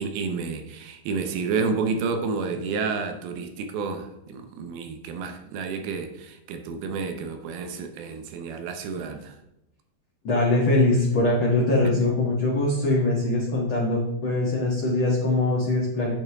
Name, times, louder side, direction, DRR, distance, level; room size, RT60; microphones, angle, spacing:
voice 1, 0.0-9.3 11.9-12.0, right 5 dB, 80° right, 6 dB, 2.8 m, -30 dB
voice 2, 10.2-16.1, left 2 dB, 45° left, -5 dB, 1.8 m, -22 dB
9.1 x 8.9 x 3.6 m, 0.86 s
omnidirectional pair, 4.5 m